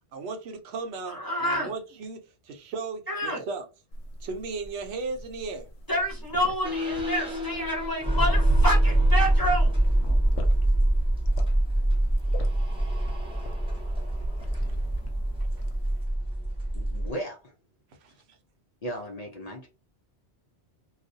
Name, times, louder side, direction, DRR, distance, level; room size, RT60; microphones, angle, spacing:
voice 1, 0.1-3.7 4.2-5.7 18.0-18.4, right 4 dB, 75° right, 0.8 m, -36 dB
voice 2, 1.1-1.7 3.1-3.4 5.9-9.8, equal, 20° left, 0.8 m, -28 dB
sound 1, 3.9-16.0, equal, 90° left, 0.9 m, -35 dB
sound 2, 6.6-17.1, right 1 dB, 5° right, 0.5 m, -25 dB
voice 3, 16.7-17.5 18.1-18.2 18.8-19.7, equal, 50° left, 0.5 m, -36 dB
2.4 x 2.0 x 2.5 m
omnidirectional pair, 1.1 m